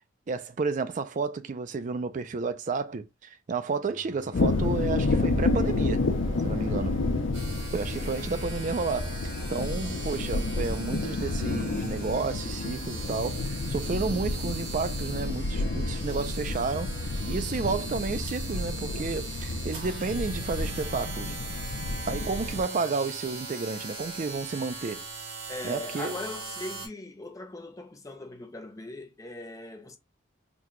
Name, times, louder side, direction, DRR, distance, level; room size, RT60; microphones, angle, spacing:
voice 1, 0.3-6.0 6.4-7.0 7.7-21.4 22.1-25.0 25.6-26.2, right 4 dB, 40° right, 0.3 m, -31 dB
Bowed string instrument, 3.7-8.7, right 1 dB, 55° right, 0.9 m, -45 dB
sound 1, 4.3-22.6, left 2 dB, 70° left, 0.5 m, -30 dB
sound 2, 7.3-26.9, right 3 dB, 85° right, 1.6 m, -41 dB
voice 2, 8.0-8.5 25.5-30.0, left 2 dB, 15° left, 0.5 m, -40 dB
4.0 x 2.2 x 3.0 m
head